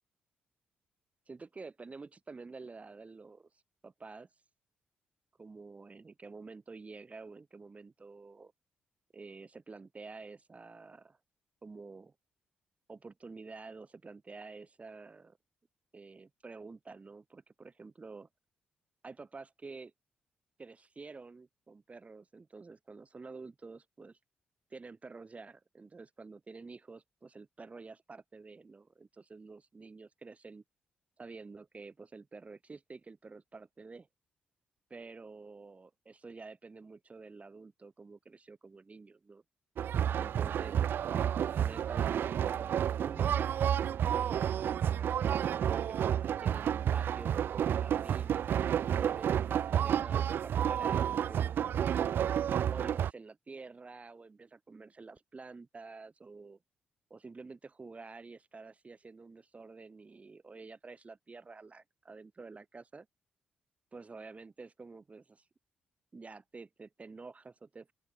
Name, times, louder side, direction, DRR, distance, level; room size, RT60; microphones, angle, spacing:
voice 1, 1.3-3.5 3.8-4.3 5.4-8.5 9.1-11.2 11.6-12.1 12.9-15.4 15.9-18.3 19.0-19.9 20.6-24.2 24.7-30.6 31.2-34.1 34.9-39.4 40.2-40.8 41.6-43.6 44.2-52.1 52.7-56.6 57.1-63.1 63.9-65.5 66.1-67.9, right 4 dB, 35° right, 5.8 m, -49 dB
sound 1, 39.8-53.1, right 9 dB, 65° right, 0.4 m, -30 dB
open air
supercardioid pair, 50°, 4 cm